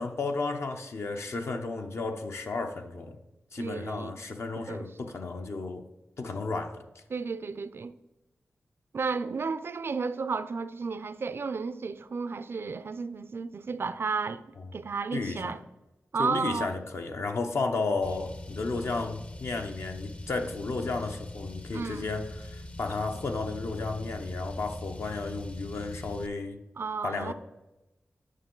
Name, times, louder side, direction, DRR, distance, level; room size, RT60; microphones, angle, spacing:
voice 1, 0.0-3.2 3.5-5.8 6.2-6.8 15.1-15.5 16.2-26.6 27.0-27.3, left 3 dB, 65° left, 0.7 m, -33 dB
voice 2, 3.6-4.2 4.7-4.9 7.1-7.9 8.9-14.4 14.7-15.6 16.1-16.7 21.7-22.1 26.8-27.3, right 4 dB, 55° right, 0.4 m, -33 dB
Car, 18.0-26.3, left 2 dB, 25° left, 0.5 m, -41 dB
9.3 x 5.9 x 3.8 m
wide cardioid pair, 70°, 5 cm